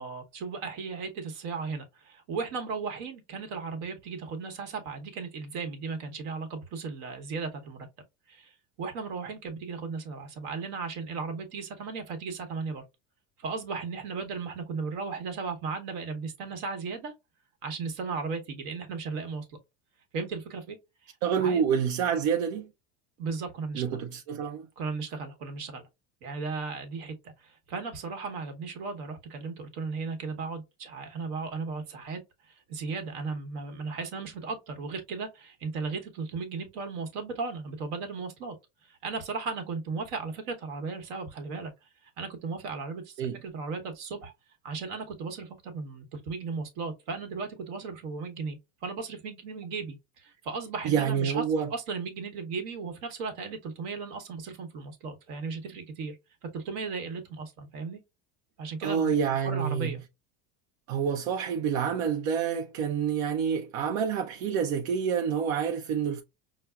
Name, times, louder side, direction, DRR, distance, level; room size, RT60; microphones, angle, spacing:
voice 1, 0.0-7.9 8.3-12.8 13.4-17.1 17.6-19.6 20.1-20.8 21.0-21.1 21.4-21.6 23.2-23.8 24.8-25.8 26.2-32.2 32.5-38.5 38.9-41.7 42.0-44.3 44.6-51.4 51.7-56.2 56.5-58.0 58.6-59.1 59.4-60.0, right 4 dB, 60° right, 1.0 m, -36 dB
voice 2, 21.2-22.7 23.8-24.7 43.2-43.4 50.8-51.7 58.8-60.0 60.9-66.2, right 7 dB, 85° right, 0.6 m, -28 dB
5.7 x 2.1 x 2.3 m
cardioid pair, 175°, 38 cm